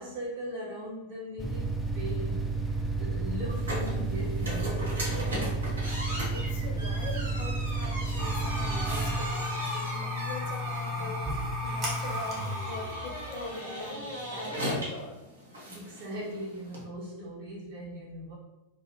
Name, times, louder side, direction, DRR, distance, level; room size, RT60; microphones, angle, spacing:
voice 1, 0.0-2.7 3.0-5.5 15.6-18.3, equal, 55° right, -5 dB, 1.1 m, -39 dB
sound 1, 1.4-9.2, right 3 dB, ahead, 0.3 m, -31 dB
sound 2, 3.5-16.8, equal, 75° right, 0.7 m, -38 dB
voice 2, 6.3-15.2, left 3 dB, 50° left, 1 dB, 0.6 m, -42 dB
sound 3, 8.2-14.8, left 1 dB, 30° right, 1.1 m, -35 dB
2.4 x 2.3 x 2.9 m, 0.98 s
figure-of-eight pair, 90°, 0 cm